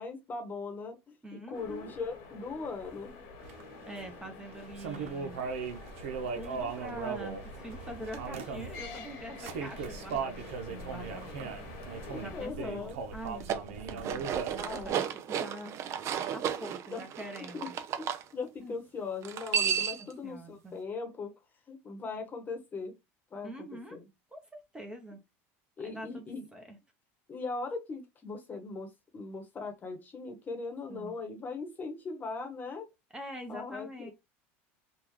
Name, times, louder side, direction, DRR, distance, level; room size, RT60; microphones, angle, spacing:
voice 1, 0.0-3.2 12.0-13.0 14.6-15.2 16.6-17.0 17.5-17.7 18.0-21.3 21.7-22.9 23.3-24.1 25.8-26.5 27.3-32.9 33.5-34.1, left 4 dB, 25° left, 1.0 m, -39 dB
voice 2, 1.2-2.0 3.9-5.4 6.3-11.3 12.2-14.9 15.3-15.8 16.3-17.7 18.6-18.7 20.2-20.8 23.4-24.0 24.3-25.2 25.8-26.8 30.9-31.1 33.1-34.1, right 1 dB, 10° right, 0.8 m, -44 dB
sound 1, 1.5-12.5, left 4 dB, 70° left, 1.1 m, -48 dB
sound 2, 3.4-14.9, right 5 dB, 85° right, 0.8 m, -39 dB
sound 3, 13.3-18.2 19.2-20.1, right 8 dB, 45° right, 0.5 m, -33 dB
3.6 x 2.4 x 3.0 m
supercardioid pair, 115°, 7 cm